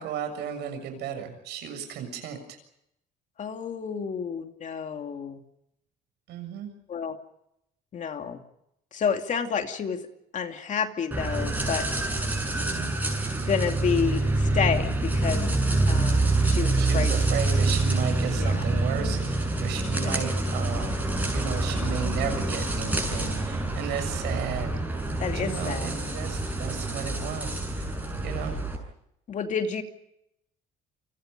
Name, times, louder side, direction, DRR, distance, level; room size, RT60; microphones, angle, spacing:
voice 1, 0.0-2.6 6.3-6.7 12.5-12.9 16.8-20.9 21.3-24.7 25.3-27.9 28.2-28.6, right 8 dB, 85° right, 7 dB, 7.1 m, -34 dB
voice 2, 3.4-5.4 6.9-7.2 7.9-8.4 8.9-10.0 10.3-11.9 13.5-15.5 15.9-17.1 18.4-18.5 19.9-20.1 25.2-25.9 29.3-29.8, left 6 dB, 45° left, 5 dB, 2.7 m, -29 dB
sound 1, 11.1-28.8, right 2 dB, 10° right, 7.6 m, -26 dB
29.5 x 25.0 x 5.3 m, 0.81 s
cardioid pair, 110°, 17 cm